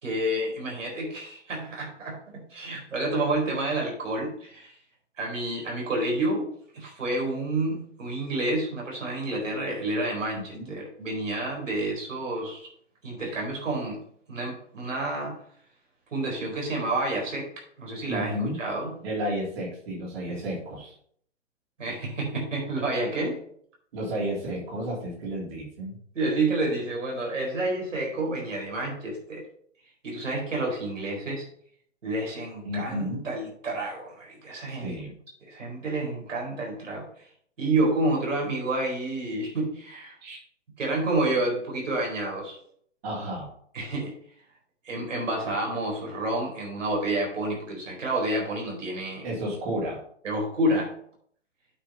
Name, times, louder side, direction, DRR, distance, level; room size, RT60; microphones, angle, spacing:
voice 1, 0.0-4.8 5.2-6.5 6.7-12.7 13.0-14.0 14.3-15.4 16.1-19.0 20.3-20.6 21.8-23.4 26.1-29.4 30.0-31.5 32.0-35.0 35.4-37.2 37.6-40.2 40.8-42.6 43.7-44.1 44.8-49.3 50.2-50.9, right 2 dB, 80° right, -1 dB, 4.4 m, -29 dB
voice 2, 18.1-18.6 19.0-21.0 23.9-26.0 32.6-33.2 34.7-35.1 40.2-40.4 43.0-43.5 49.2-50.0, equal, 55° right, -4 dB, 3.7 m, -32 dB
8.7 x 5.1 x 5.4 m, 0.63 s
hypercardioid pair, 145°, 37 cm